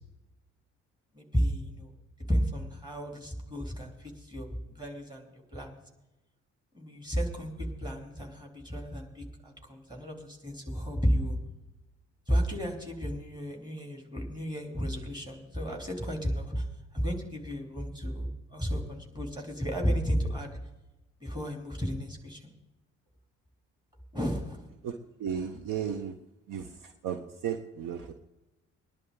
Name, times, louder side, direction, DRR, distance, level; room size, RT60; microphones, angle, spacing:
voice 1, 1.1-1.9 2.3-5.8 6.7-11.4 12.3-16.6 16.9-20.5 21.2-22.5 24.1-24.7, equal, 10° right, 1 dB, 3.5 m, -33 dB
voice 2, 24.8-26.1 26.5-28.1, right 8 dB, 50° right, 8 dB, 0.9 m, -35 dB
21.0 x 11.0 x 3.9 m, 0.98 s
figure-of-eight pair, 45°, 40 cm